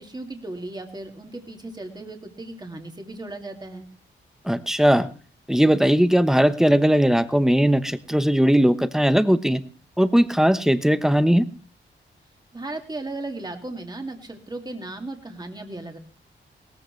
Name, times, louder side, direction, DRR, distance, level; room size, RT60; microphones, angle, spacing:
voice 1, 0.0-3.9 12.5-16.0, right 2 dB, 20° right, 3 dB, 2.3 m, -36 dB
voice 2, 4.4-5.1 5.5-9.6 10.0-11.5, equal, ahead, 11 dB, 1.0 m, -19 dB
17.5 x 14.5 x 3.2 m, 0.37 s
cardioid pair, 70°, 21 cm